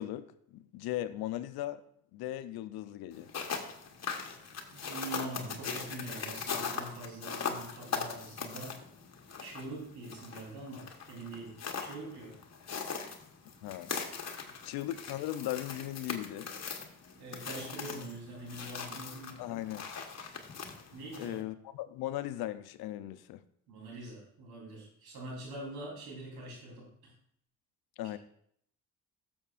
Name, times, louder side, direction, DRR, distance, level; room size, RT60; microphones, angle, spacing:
voice 1, 0.0-1.8 2.1-3.3 13.6-14.0 14.6-16.5 19.4-19.9 21.2-23.4 28.0-28.2, left 13 dB, 75° left, 13 dB, 0.7 m, -38 dB
sound 1, 3.1-21.4, left 6 dB, 45° left, 1.3 m, -40 dB
voice 2, 4.7-8.8 9.4-12.4 14.4-14.5 17.2-19.4 20.9-21.4 23.7-27.1, right 2 dB, 80° right, -3 dB, 3.8 m, -44 dB
12.5 x 7.1 x 2.5 m, 0.67 s
supercardioid pair, 65°, 37 cm